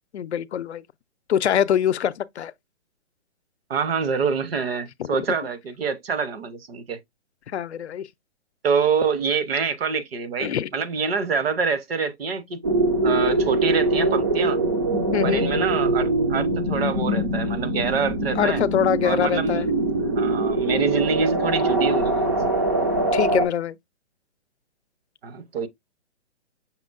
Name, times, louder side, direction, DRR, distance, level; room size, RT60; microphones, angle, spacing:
voice 1, 0.1-0.8 1.3-2.5 7.5-8.1 10.4-10.7 15.1-15.5 18.4-19.7 23.1-23.8, left 9 dB, 75° left, 0.5 m, -23 dB
voice 2, 3.7-7.0 8.6-12.6 13.0-14.6 15.2-18.6 19.0-19.7 20.2-22.4 25.2-25.7, right 5 dB, 60° right, 0.9 m, -26 dB
sound 1, 12.6-23.5, right 2 dB, 20° right, 0.3 m, -23 dB
6.0 x 3.6 x 2.5 m
hypercardioid pair, 140°, 34 cm